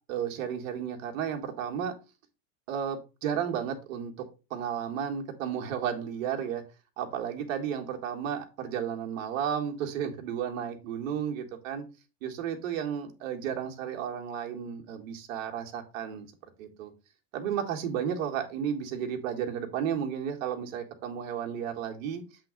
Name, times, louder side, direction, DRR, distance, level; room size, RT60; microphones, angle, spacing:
voice 1, 0.1-1.9 2.7-4.1 4.5-6.6 7.0-11.8 12.2-16.3 16.6-16.9 17.3-22.2, right 8 dB, 70° right, 2.0 m, -33 dB
7.5 x 3.9 x 5.2 m
hypercardioid pair, 105°, 40 cm